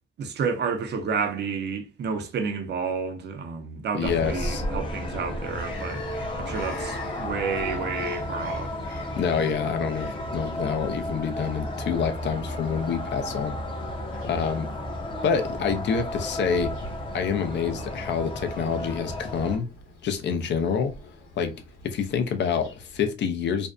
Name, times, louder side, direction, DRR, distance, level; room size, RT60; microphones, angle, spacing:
voice 1, 0.2-6.1 6.4-8.8, right 5 dB, 60° right, 0.6 m, -30 dB
voice 2, 3.9-4.6 9.2-13.6 14.2-14.7 15.2-16.7 17.1-19.7 20.0-20.9 21.4-21.5 21.8-23.7, left 6 dB, 65° left, 0.6 m, -27 dB
sound 1, 4.0-19.6, left 1 dB, 25° left, 0.7 m, -33 dB
Bird vocalization bird call bird song, 5.4-23.1, left 2 dB, 90° left, 1.0 m, -47 dB
2.6 x 2.1 x 2.4 m
cardioid pair, 90°, 20 cm